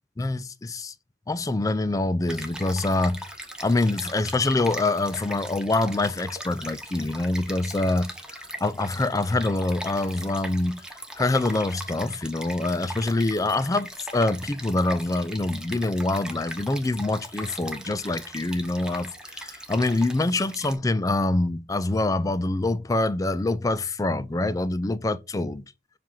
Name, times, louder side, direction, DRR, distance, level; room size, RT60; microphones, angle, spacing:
voice 1, 0.2-0.9 1.3-10.9 11.2-25.6, left 2 dB, 20° left, 0.4 m, -25 dB
Stream, 2.3-20.8, right 1 dB, 5° right, 0.8 m, -40 dB
7.4 x 2.5 x 5.6 m
head